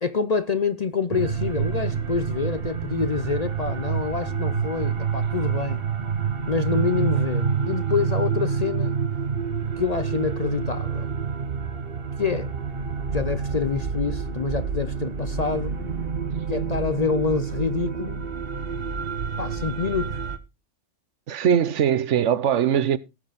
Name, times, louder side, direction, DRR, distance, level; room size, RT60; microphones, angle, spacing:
voice 1, 0.0-5.8 6.5-9.0 9.8-11.1 12.2-12.5 13.1-15.7 16.5-18.2 19.4-20.2, left 5 dB, 45° left, 0.5 m, -26 dB
sound 1, 1.1-20.4, right 6 dB, 50° right, 1.2 m, -28 dB
voice 2, 21.3-23.0, right 9 dB, 70° right, 1.0 m, -21 dB
17.5 x 6.3 x 4.1 m
omnidirectional pair, 1.3 m